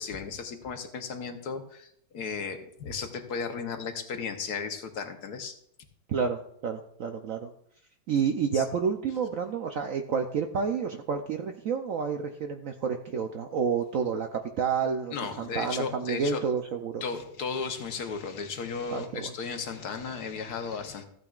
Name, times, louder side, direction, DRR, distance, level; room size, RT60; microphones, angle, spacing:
voice 1, 0.0-5.5 8.5-8.6 15.1-16.4 17.0-21.0, left 5 dB, 65° left, 6 dB, 1.4 m, -35 dB
voice 2, 6.1-7.5 8.1-17.0 18.9-19.3, right 6 dB, 65° right, 5 dB, 0.8 m, -29 dB
15.0 x 8.7 x 2.4 m, 0.68 s
omnidirectional pair, 2.0 m